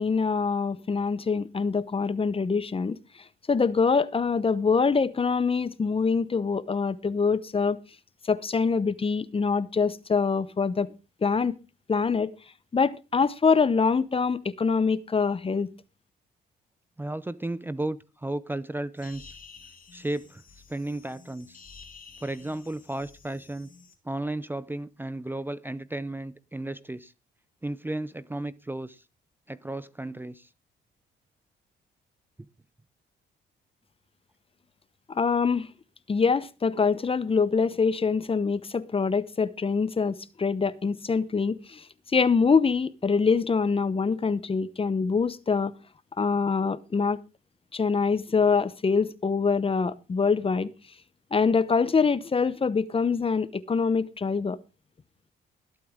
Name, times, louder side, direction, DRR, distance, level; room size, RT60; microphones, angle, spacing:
voice 1, 0.0-3.0 3.5-7.8 8.3-10.9 11.2-11.5 11.9-12.3 12.7-15.7 35.1-35.7 36.1-41.9 42.1-45.7 46.2-47.2 47.7-50.7 51.3-54.6, left 5 dB, 30° left, 0.9 m, -24 dB
voice 2, 17.0-19.4 19.9-20.4 20.7-21.6 22.2-23.7 24.0-27.1 27.6-29.0 29.5-30.5, right 2 dB, 10° right, 0.6 m, -34 dB
sound 1, 19.0-24.0, left 5 dB, 45° left, 3.1 m, -51 dB
20.5 x 8.5 x 3.6 m
cardioid pair, 90°, 20 cm